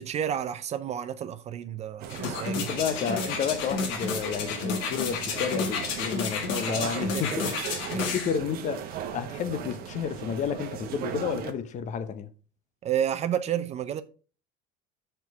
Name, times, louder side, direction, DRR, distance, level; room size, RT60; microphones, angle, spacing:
voice 1, 0.1-2.7 6.8-7.2 7.9-8.1 12.8-14.0, right 9 dB, 35° right, 0.5 m, -31 dB
sound 1, 2.0-11.5, right 9 dB, 50° right, 0.9 m, -38 dB
sound 2, 2.1-8.4 8.9-9.0, left 5 dB, 80° left, 1.8 m, -31 dB
voice 2, 2.5-7.7 8.1-8.8 9.1-12.3, left 7 dB, 40° left, 0.8 m, -31 dB
7.0 x 4.5 x 4.6 m
cardioid pair, 145°, 19 cm